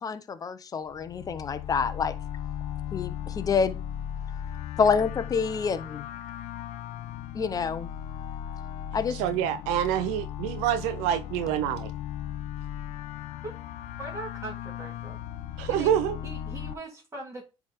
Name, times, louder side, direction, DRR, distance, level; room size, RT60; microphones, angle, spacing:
voice 1, 0.0-2.1 2.9-3.8 4.8-6.1 7.3-7.9 8.9-9.2, left 5 dB, 30° left, 0.9 m, -27 dB
sound 1, 0.9-16.7, left 10 dB, 70° left, 0.6 m, -37 dB
voice 2, 9.1-11.9 15.6-16.2, right 11 dB, 85° right, 0.6 m, -27 dB
voice 3, 14.0-15.2 15.7-17.4, right 2 dB, 25° right, 2.9 m, -40 dB
9.7 x 3.6 x 3.6 m
supercardioid pair, 95°, 12 cm